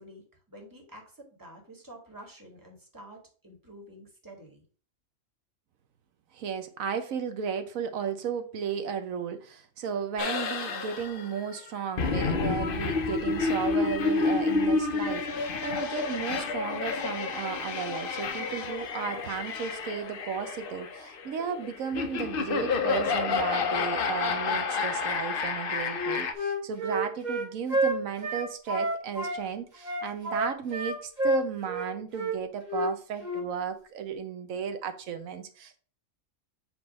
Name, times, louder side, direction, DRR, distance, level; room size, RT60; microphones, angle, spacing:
voice 1, 0.0-4.6, right 1 dB, 15° right, 1.8 m, -49 dB
voice 2, 6.3-35.8, right 7 dB, 85° right, 1.2 m, -34 dB
sound 1, 10.2-26.3, left 4 dB, 50° left, 0.8 m, -30 dB
Wind instrument woodwind instrument, 25.9-29.4 29.8-32.3 32.7-32.9 33.2-33.4, right 1 dB, 35° right, 1.5 m, -29 dB
7.8 x 3.1 x 5.3 m
omnidirectional pair, 1.4 m